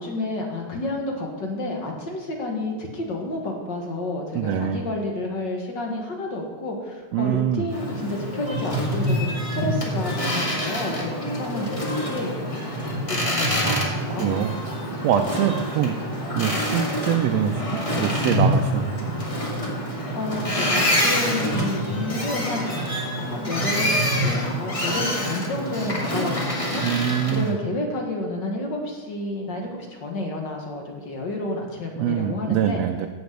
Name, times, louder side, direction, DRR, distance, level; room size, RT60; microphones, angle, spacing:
voice 1, 0.0-14.4 20.1-22.9 23.3-26.8 27.3-32.8, left 2 dB, 45° left, 1 dB, 1.9 m, -30 dB
voice 2, 4.3-4.8 7.1-7.7 13.6-14.6 15.0-16.0 16.3-19.1 26.8-27.5 32.0-33.1, right 9 dB, 75° right, 4 dB, 1.7 m, -24 dB
Boat Water vehicle, 7.7-27.5, equal, 15° left, 1.3 m, -26 dB
15.0 x 5.2 x 7.9 m, 1.4 s
omnidirectional pair, 3.4 m